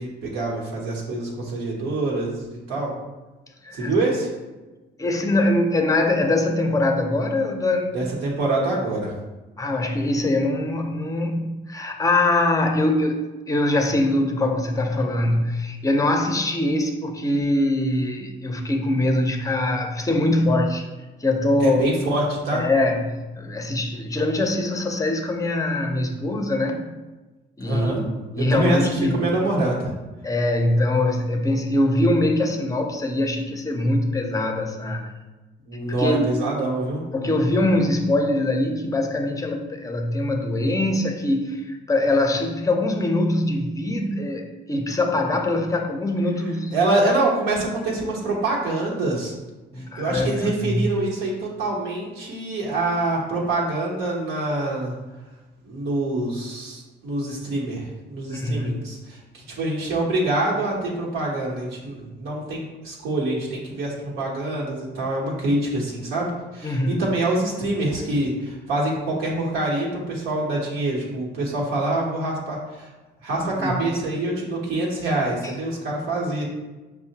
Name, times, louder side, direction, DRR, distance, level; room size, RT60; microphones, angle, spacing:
voice 1, 0.0-2.9 3.7-4.3 7.9-9.1 21.6-22.7 27.6-28.0 28.4-29.9 35.7-37.0 46.7-49.3 49.8-54.9 55.6-72.9 73.2-76.5, right 2 dB, 85° right, -4 dB, 0.9 m, -25 dB
voice 2, 5.0-8.0 9.6-20.8 21.2-21.9 22.5-26.9 27.6-29.3 30.2-35.1 35.9-36.4 37.1-46.7 49.7-50.9 58.3-58.8 66.6-67.0 73.6-73.8 75.4-75.5, left 1 dB, 15° left, 4 dB, 0.5 m, -23 dB
5.5 x 2.1 x 2.7 m, 1.2 s
cardioid pair, 90°, 20 cm